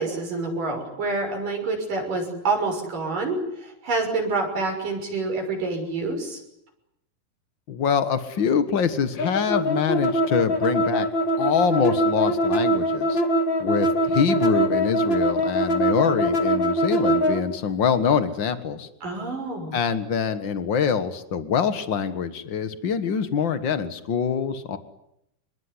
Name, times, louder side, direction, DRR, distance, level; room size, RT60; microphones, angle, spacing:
voice 1, 0.0-6.4 19.0-19.8, right 3 dB, 55° right, 3 dB, 7.8 m, -27 dB
voice 2, 7.7-11.1 11.4-13.2 13.6-18.9 19.7-24.8, left 7 dB, 85° left, 11 dB, 1.0 m, -24 dB
sound 1, 9.2-17.4, equal, 35° left, 2.7 m, -22 dB
26.5 x 22.5 x 9.8 m, 0.78 s
omnidirectional pair, 4.6 m